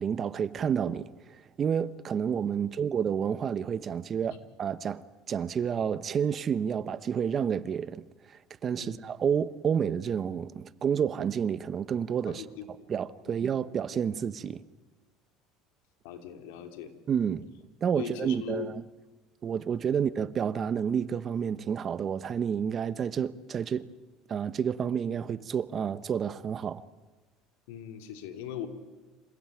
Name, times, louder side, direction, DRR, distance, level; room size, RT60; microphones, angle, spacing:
voice 1, 0.0-12.4 12.9-14.6 17.1-17.4 17.8-18.8 19.4-23.9 24.3-26.8, right 7 dB, 35° right, 0.9 m, -30 dB
voice 2, 12.3-12.6 13.2-13.4 16.0-16.9 17.9-18.7 27.7-28.7, left 9 dB, 80° left, 2.9 m, -40 dB
27.5 x 16.0 x 9.1 m
supercardioid pair, 110°, 0 cm